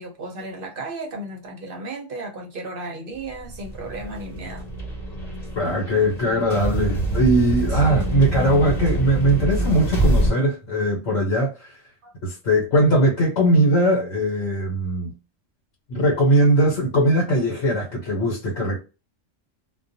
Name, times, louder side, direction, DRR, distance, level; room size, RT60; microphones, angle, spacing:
voice 1, 0.0-4.7 7.7-8.1 12.0-12.1 18.5-18.7, right 2 dB, 55° right, 0.7 m, -34 dB
sound 1, 3.3-10.3, right 1 dB, 35° left, 1.0 m, -25 dB
voice 2, 5.6-11.8 12.2-15.1 15.9-18.8, right 1 dB, 65° left, 1.1 m, -20 dB
2.4 x 2.2 x 2.6 m
omnidirectional pair, 1.3 m